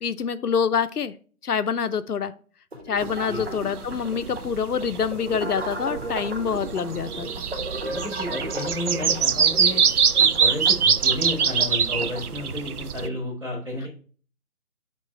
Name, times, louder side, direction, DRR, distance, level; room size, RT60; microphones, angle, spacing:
voice 1, 0.0-1.1 1.4-2.3 2.9-7.3, left 6 dB, 90° left, 13 dB, 0.6 m, -26 dB
sound 1, 2.7-12.3, right 1 dB, 45° right, 0.9 m, -36 dB
sound 2, 3.0-13.1, right 7 dB, 80° right, 0.6 m, -24 dB
voice 2, 7.8-9.8 10.2-13.9, left 1 dB, 20° right, -7 dB, 2.0 m, -32 dB
7.5 x 3.0 x 4.4 m, 0.41 s
figure-of-eight pair, 160°, 44 cm